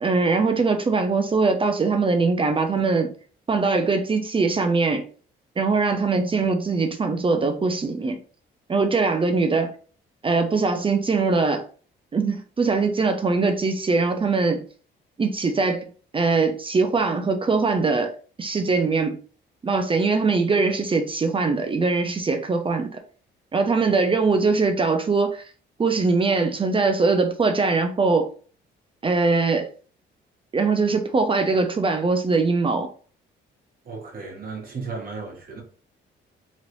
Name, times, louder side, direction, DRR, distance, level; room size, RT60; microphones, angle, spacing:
voice 1, 0.0-3.1 3.5-5.0 5.6-8.2 8.7-9.7 10.2-11.6 12.1-14.6 15.2-15.8 16.1-18.1 18.4-19.2 19.6-23.0 23.5-25.4 25.8-28.3 29.0-29.7 30.5-32.9, right 4 dB, 25° right, 0.5 m, -22 dB
voice 2, 33.8-35.6, right 4 dB, 45° right, 1.3 m, -34 dB
3.1 x 2.5 x 3.0 m
cardioid pair, 90°, 20 cm